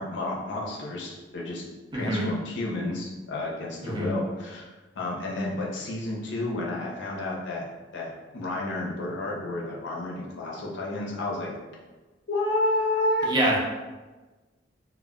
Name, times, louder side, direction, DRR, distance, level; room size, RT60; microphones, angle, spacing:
voice 1, 0.0-1.6 1.9-4.7 4.9-7.6 7.9-11.5 12.3-13.3, left 2 dB, 75° left, -3 dB, 0.6 m, -30 dB
voice 2, 1.9-2.3 3.8-4.1 13.2-13.6, right 1 dB, 25° right, -3 dB, 0.5 m, -25 dB
2.2 x 2.2 x 3.6 m, 1.2 s
head